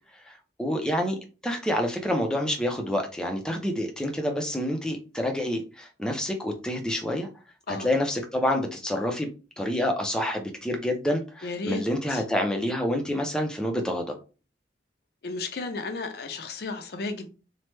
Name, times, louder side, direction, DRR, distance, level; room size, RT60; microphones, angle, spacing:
voice 1, 0.1-1.2 1.4-7.3 7.7-9.3 9.6-14.1, left 1 dB, 5° left, 0.5 m, -28 dB
voice 2, 11.4-11.8 12.1-12.2 15.2-17.3, left 3 dB, 60° left, 0.5 m, -33 dB
3.1 x 2.1 x 3.2 m
head